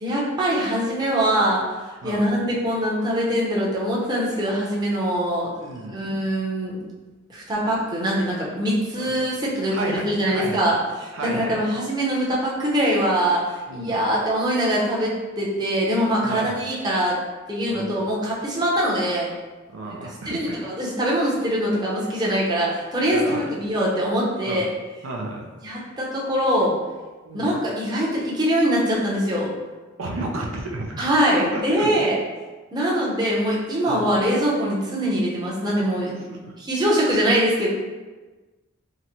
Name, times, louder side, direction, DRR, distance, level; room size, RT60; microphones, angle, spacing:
voice 1, 0.0-1.8 2.0-5.5 5.9-6.8 7.3-10.8 11.3-17.2 17.5-19.3 20.2-24.7 25.6-26.7 27.3-29.5 31.0-32.2 32.7-37.7, equal, 20° right, -6 dB, 0.7 m, -23 dB
voice 2, 5.6-6.0 9.0-9.1 9.7-10.6 11.1-11.6 13.7-14.0 16.3-16.5 17.6-18.0 19.7-20.7 23.1-23.5 24.4-24.6 25.0-25.9 27.2-27.5 30.0-31.1 31.4-32.0 33.9-34.0 36.3-36.5, right 2 dB, 90° right, 1 dB, 0.5 m, -32 dB
3.8 x 2.1 x 2.8 m, 1.3 s
head